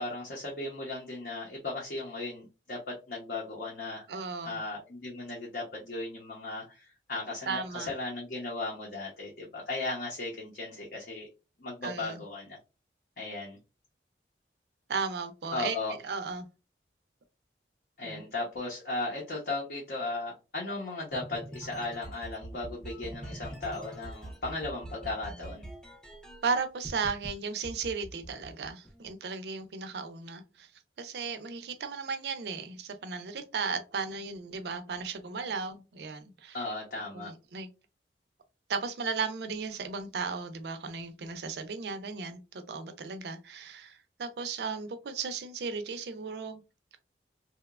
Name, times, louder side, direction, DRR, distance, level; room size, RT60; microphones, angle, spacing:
voice 1, 0.0-4.0 4.4-11.3 11.6-12.6 13.2-13.6 15.5-16.0 18.0-25.7 36.5-37.3, left 2 dB, 55° left, 0.7 m, -36 dB
voice 2, 4.1-4.6 7.5-7.9 11.8-12.2 14.9-15.8 16.0-16.5 18.0-18.2 26.4-30.7 31.0-36.6 37.1-37.7 38.7-46.6, right 5 dB, 70° right, 0.4 m, -35 dB
sound 1, 21.1-26.5 26.8-27.3 27.6-29.1, right 1 dB, 5° left, 0.4 m, -43 dB
2.8 x 2.1 x 2.3 m
head